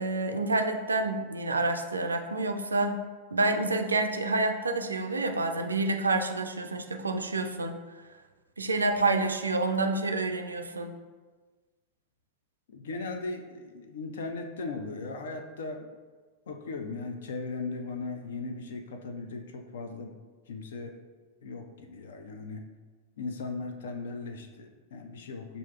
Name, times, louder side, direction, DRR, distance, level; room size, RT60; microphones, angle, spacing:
voice 1, 0.0-3.0 3.3-7.8 8.6-10.9, right 2 dB, 75° right, 5 dB, 0.3 m, -28 dB
voice 2, 12.7-15.9 16.5-20.1 20.5-21.0 21.4-22.6 23.2-25.6, left 3 dB, 60° left, 6 dB, 0.4 m, -38 dB
6.9 x 2.6 x 2.3 m, 1.4 s
figure-of-eight pair, 90°, 0 cm